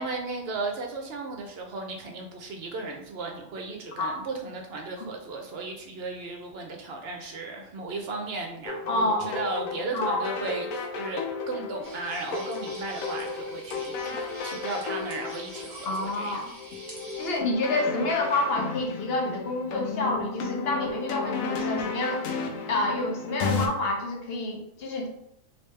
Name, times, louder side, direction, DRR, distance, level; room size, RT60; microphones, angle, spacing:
voice 1, 0.0-16.5, right 3 dB, 60° right, 2 dB, 0.7 m, -35 dB
sound 1, 8.7-23.7, left 4 dB, 85° left, 1.0 m, -34 dB
voice 2, 8.9-9.3 9.9-10.2 15.8-16.4 17.2-22.3 22.7-25.1, left 2 dB, 55° left, 1 dB, 0.9 m, -28 dB
sound 2, 11.8-17.4, right 1 dB, 30° right, 1.2 m, -46 dB
3.2 x 2.9 x 3.2 m, 0.76 s
omnidirectional pair, 1.4 m